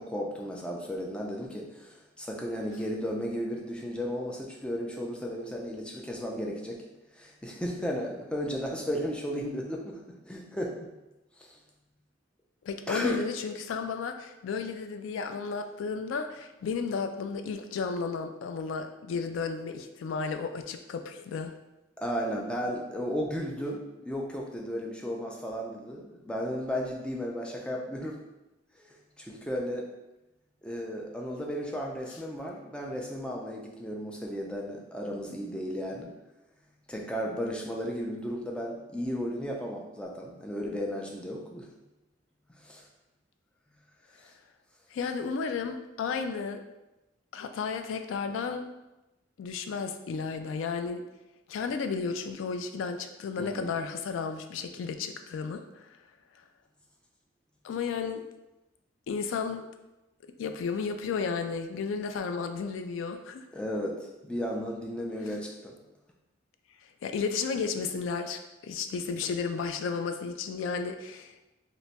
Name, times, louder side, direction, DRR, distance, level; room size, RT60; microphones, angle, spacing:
voice 1, 0.0-6.8 7.1-10.9 11.4-11.6 12.9-13.2 22.0-28.2 28.8-29.9 30.6-36.1 36.9-41.7 42.6-42.8 53.4-53.7 63.5-65.7, equal, 5° left, -1 dB, 0.3 m, -34 dB
voice 2, 12.6-21.5 44.9-46.6 47.3-48.7 49.4-51.0 51.5-56.0 57.6-58.2 59.1-59.7 60.4-63.5 67.0-71.4, left 5 dB, 85° left, 7 dB, 0.3 m, -33 dB
2.9 x 2.2 x 4.0 m, 0.98 s
head